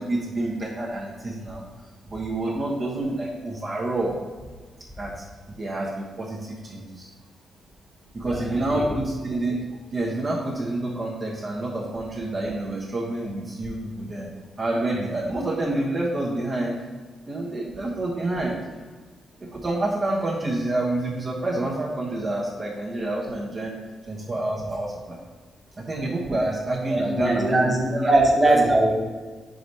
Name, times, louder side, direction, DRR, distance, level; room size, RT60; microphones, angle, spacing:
voice 1, 0.0-1.7 2.1-4.2 5.0-7.1 8.1-9.6 9.9-14.3 14.6-16.8 17.3-18.6 19.4-23.8 24.1-25.2 25.8-28.1 28.4-28.7, right 2 dB, 35° right, -3 dB, 0.9 m, -28 dB
voice 2, 26.9-28.9, right 2 dB, 15° right, -2 dB, 1.1 m, -20 dB
5.0 x 4.8 x 4.1 m, 1.4 s
cardioid pair, 110°, 0 cm